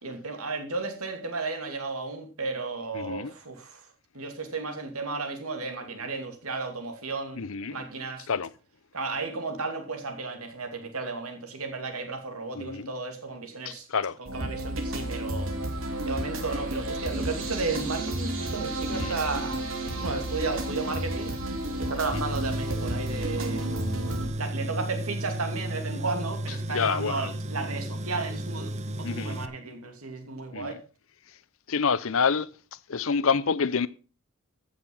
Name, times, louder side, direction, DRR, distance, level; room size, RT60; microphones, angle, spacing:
voice 1, 0.0-3.9 4.1-7.4 7.7-8.3 8.9-13.9 14.2-15.5 16.1-19.6 20.0-21.3 21.8-23.7 24.4-30.8, right 3 dB, 85° right, 2.7 m, -34 dB
voice 2, 2.9-3.3 7.4-7.8 8.3-8.5 12.5-12.9 13.7-14.2 18.9-19.2 21.9-22.2 26.7-27.3 29.0-29.4 30.5-30.8 31.7-32.5 32.9-33.9, left 5 dB, 70° left, 0.6 m, -28 dB
sound 1, 14.3-24.3, right 1 dB, 65° right, 2.9 m, -32 dB
Tools, 22.1-29.5, right 1 dB, 30° right, 0.7 m, -33 dB
15.0 x 6.7 x 5.5 m
head